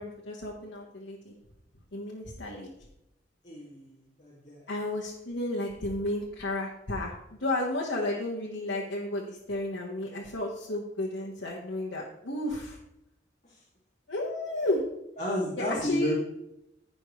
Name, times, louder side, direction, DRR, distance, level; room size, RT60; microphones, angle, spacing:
voice 1, 0.0-1.3 1.9-2.7 4.7-12.8 14.1-14.9 15.6-16.1, left 1 dB, 75° left, -3 dB, 1.5 m, -32 dB
voice 2, 3.4-4.6 13.4-13.6 15.2-16.1, equal, 40° left, -6 dB, 2.5 m, -32 dB
15.5 x 5.4 x 3.3 m, 0.84 s
head